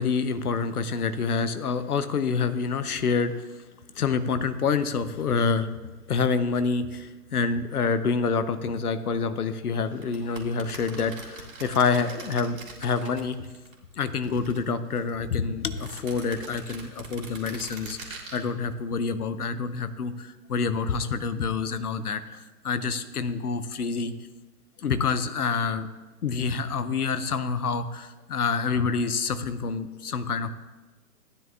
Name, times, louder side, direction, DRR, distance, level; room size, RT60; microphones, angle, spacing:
voice 1, 0.0-3.3 4.0-5.7 6.1-13.5 14.0-24.1 24.8-25.9 26.2-30.5, left 5 dB, 65° left, 11 dB, 0.8 m, -27 dB
sound 1, 9.9-13.7 14.0-15.1 15.7-18.4, right 3 dB, 50° right, 2.2 m, -43 dB
15.0 x 9.7 x 2.4 m, 1.2 s
figure-of-eight pair, 130°, 48 cm